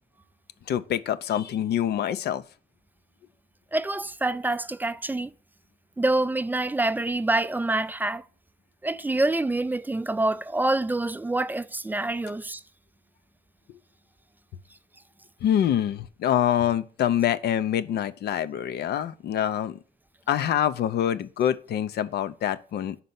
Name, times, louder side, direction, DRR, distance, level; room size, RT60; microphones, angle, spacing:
voice 1, 0.7-2.4 15.4-19.8 20.3-23.0, left 10 dB, 75° left, 0.5 m, -25 dB
voice 2, 3.7-5.3 6.0-8.2 8.8-12.6, right 2 dB, 10° right, 0.3 m, -26 dB
5.3 x 4.1 x 5.7 m
cardioid pair, 85°, 17 cm